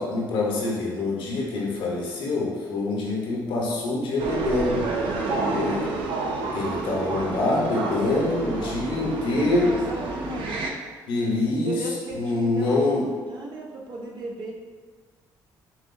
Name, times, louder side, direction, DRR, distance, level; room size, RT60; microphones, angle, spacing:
voice 1, 0.0-4.9 5.5-5.8 6.5-9.8 11.1-11.9 12.1-13.1, left 2 dB, 70° left, -3 dB, 1.1 m, -25 dB
sound 1, 4.2-10.7, right 3 dB, 75° right, 0.6 m, -29 dB
voice 2, 5.0-5.9 7.9-10.7 11.6-12.8 13.3-14.5, right 1 dB, 55° right, -2 dB, 1.0 m, -35 dB
5.9 x 2.4 x 2.7 m, 1.4 s
supercardioid pair, 60°, 9 cm